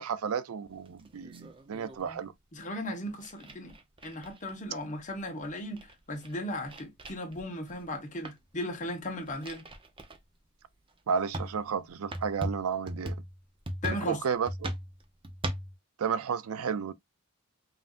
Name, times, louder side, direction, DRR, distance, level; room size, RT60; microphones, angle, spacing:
voice 1, 0.0-2.3 11.1-13.2 13.8-14.7 16.0-16.9, right 6 dB, 80° right, 0.4 m, -32 dB
sound 1, 0.7-2.2 3.1-4.7 5.2-5.3 5.5-8.0 8.2-8.5 9.0-10.2 10.8-10.9 11.3-15.7, right 1 dB, 25° right, 0.6 m, -39 dB
voice 2, 2.5-3.7 4.0-9.6 13.8-14.2, left 1 dB, 35° left, 1.1 m, -36 dB
5.4 x 2.6 x 2.5 m
head